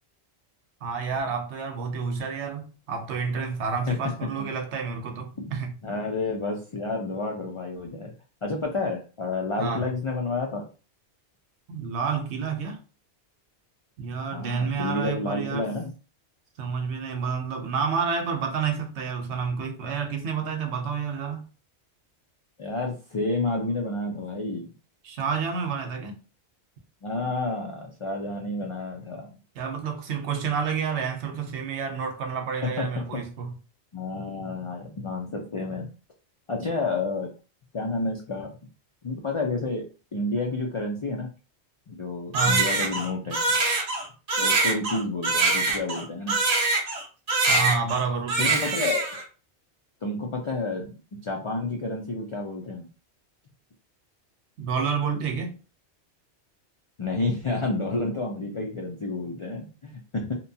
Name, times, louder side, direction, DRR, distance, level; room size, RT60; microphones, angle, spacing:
voice 1, 0.8-5.8 9.6-9.9 11.7-12.8 14.0-15.7 16.6-21.5 25.0-26.2 29.5-33.6 42.3-42.6 47.5-48.6 54.6-55.6, right 5 dB, 85° right, 0.9 m, -29 dB
voice 2, 5.8-8.1 8.4-10.6 14.3-15.9 22.6-24.6 27.0-29.4 32.6-33.2 33.9-35.9 36.5-37.3 37.7-38.5 39.0-39.8 40.1-41.3 41.9-43.4 44.4-46.4 48.4-49.2 50.0-52.9 57.0-60.3, left 2 dB, 50° left, 0.3 m, -30 dB
Crying sobbing, 42.3-47.0 47.3-48.0 48.3-49.2, right 3 dB, 40° right, 0.7 m, -24 dB
2.8 x 2.2 x 2.6 m
omnidirectional pair, 1.1 m